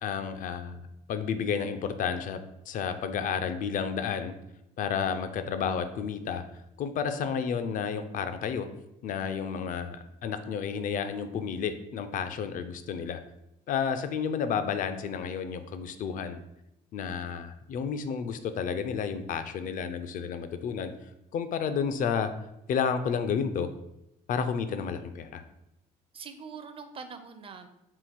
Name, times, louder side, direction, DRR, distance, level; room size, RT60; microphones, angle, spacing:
voice 1, 0.0-2.4 2.7-4.3 4.8-6.4 6.8-8.7 9.0-13.2 13.7-16.4 16.9-20.9 21.3-22.3 22.7-23.7 24.3-25.4, left 6 dB, 55° left, 10 dB, 0.4 m, -31 dB
voice 2, 9.3-9.6 26.1-27.7, right 5 dB, 35° right, 8 dB, 0.5 m, -44 dB
3.7 x 2.4 x 4.2 m, 0.85 s
cardioid pair, 110°, 17 cm